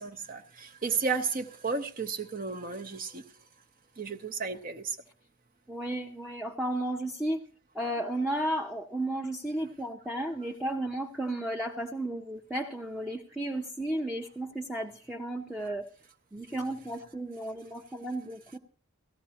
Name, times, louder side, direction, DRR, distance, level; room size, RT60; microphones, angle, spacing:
voice 1, 0.0-3.2 4.0-5.0, right 5 dB, 40° right, 6 dB, 0.7 m, -33 dB
voice 2, 5.7-7.4 7.7-15.8 16.3-18.6, right 1 dB, 5° right, 1 dB, 0.6 m, -33 dB
17.0 x 14.0 x 2.8 m, 0.41 s
head